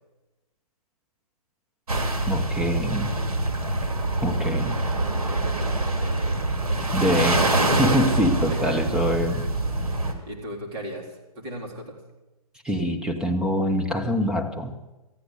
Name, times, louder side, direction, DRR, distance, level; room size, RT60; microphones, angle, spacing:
sound 1, 1.9-10.1, right 2 dB, 75° right, 2.7 m, -25 dB
voice 1, 2.3-3.1 4.2-4.8 6.9-7.4 7.8-9.4 12.6-14.7, equal, 5° right, 3 dB, 1.1 m, -24 dB
voice 2, 5.1-7.0 8.5-8.8 10.2-12.0, equal, 40° right, 0 dB, 4.0 m, -38 dB
14.5 x 9.7 x 8.2 m, 1.1 s
hypercardioid pair, 135°, 19 cm